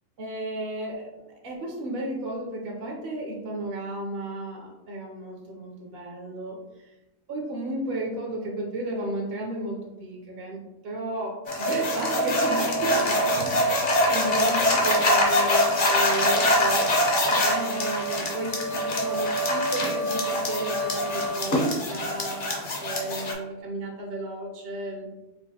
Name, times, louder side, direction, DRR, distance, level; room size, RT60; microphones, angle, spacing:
voice 1, 0.2-6.9 7.3-25.1, right 1 dB, 60° right, -1 dB, 0.6 m, -34 dB
sound 1, 11.5-23.3, equal, 50° left, 0.7 m, -24 dB
4.7 x 2.5 x 2.7 m, 1.0 s
omnidirectional pair, 1.5 m